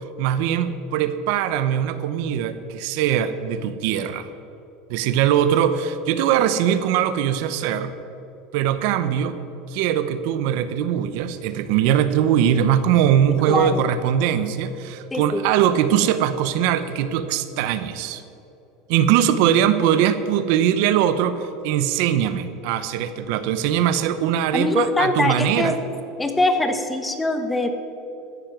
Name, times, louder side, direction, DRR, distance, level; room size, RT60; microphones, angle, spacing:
voice 1, 0.2-4.3 4.9-7.9 8.5-9.4 9.7-18.2 18.9-25.7, right 9 dB, 65° right, 12 dB, 0.8 m, -21 dB
voice 2, 13.5-13.8 15.1-15.4 24.5-25.7 26.2-27.7, left 2 dB, 10° left, 7 dB, 1.0 m, -22 dB
14.0 x 10.0 x 6.0 m, 2.9 s
supercardioid pair, 145°, 0 cm